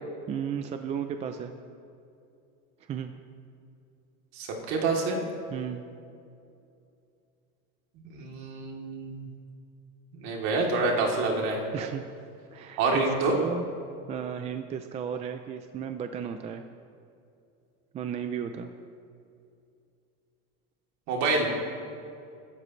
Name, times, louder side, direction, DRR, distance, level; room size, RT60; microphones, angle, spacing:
voice 1, 0.3-1.5 2.9-3.1 5.5-5.8 11.7-12.0 12.5-13.7 14.1-16.6 17.9-18.7, right 8 dB, 20° right, 7 dB, 0.4 m, -34 dB
voice 2, 4.3-5.2 8.0-9.3 10.1-11.6 12.8-13.3 21.1-21.5, right 3 dB, 55° right, -1 dB, 3.2 m, -27 dB
27.5 x 13.0 x 3.2 m, 2.5 s
cardioid pair, 165°, 32 cm